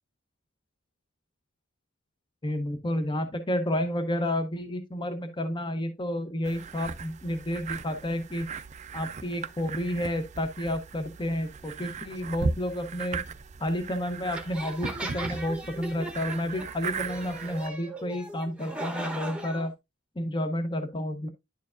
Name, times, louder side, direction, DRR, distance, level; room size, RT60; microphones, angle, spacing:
voice 1, 2.4-8.5 8.9-13.2 13.6-19.7 20.2-21.3, left 1 dB, 20° left, 0.7 m, -31 dB
sound 1, 6.4-17.7, right 4 dB, 35° right, 0.4 m, -37 dB
sound 2, 14.3-19.7, right 2 dB, 5° right, 0.9 m, -38 dB
10.5 x 4.6 x 2.4 m
head